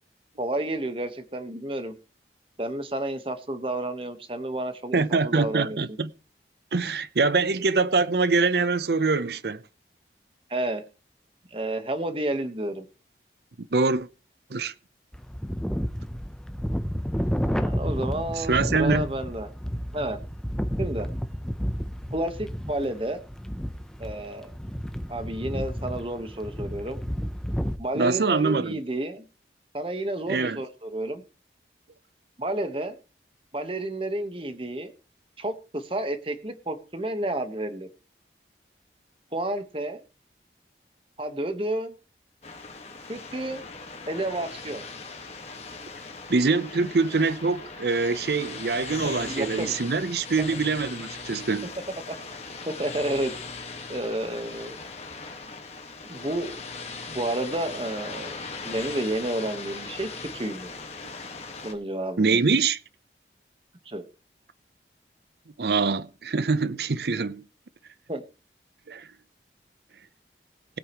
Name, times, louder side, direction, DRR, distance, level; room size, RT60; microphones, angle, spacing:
voice 1, 0.4-1.9 2.6-5.8 10.5-10.8 11.5-12.9 17.4-19.5 19.9-20.2 20.8-21.1 22.1-23.2 24.0-24.5 25.1-27.0 27.8-29.3 29.7-31.2 32.4-33.0 33.5-34.9 35.4-37.9 39.3-40.0 41.2-42.0 43.1-43.6 44.1-44.8 49.0-49.7 52.1-52.2 52.7-53.3 53.9-54.8 56.1-56.5 57.1-58.4 58.6-60.7 61.6-62.4 63.8-64.0 68.1-68.2, right 1 dB, 30° right, 1.2 m, -30 dB
voice 2, 4.9-6.1 6.7-9.6 13.7-14.1 14.5-14.7 18.4-19.1 27.9-28.8 30.3-30.6 46.3-51.7 62.2-62.8 65.6-67.4 68.9-69.1, right 4 dB, 65° right, 0.7 m, -24 dB
sound 1, 15.1-27.8, equal, 5° left, 0.6 m, -31 dB
sound 2, 42.4-61.7, left 4 dB, 35° left, 1.6 m, -39 dB
20.0 x 8.6 x 3.0 m
head